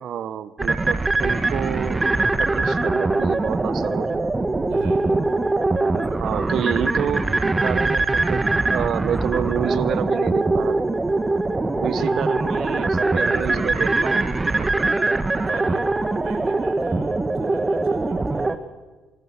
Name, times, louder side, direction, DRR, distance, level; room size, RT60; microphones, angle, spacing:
voice 1, 0.0-2.0 2.4-4.2 6.2-10.8 11.8-14.7, right 9 dB, 60° right, 16 dB, 1.2 m, -28 dB
sound 1, 0.6-18.6, right 2 dB, 20° right, 1.8 m, -22 dB
voice 2, 4.7-5.1 11.9-12.3 15.4-18.7, right 7 dB, 75° right, 4 dB, 5.2 m, -41 dB
24.5 x 21.5 x 7.3 m, 1.3 s
hypercardioid pair, 50°, 0 cm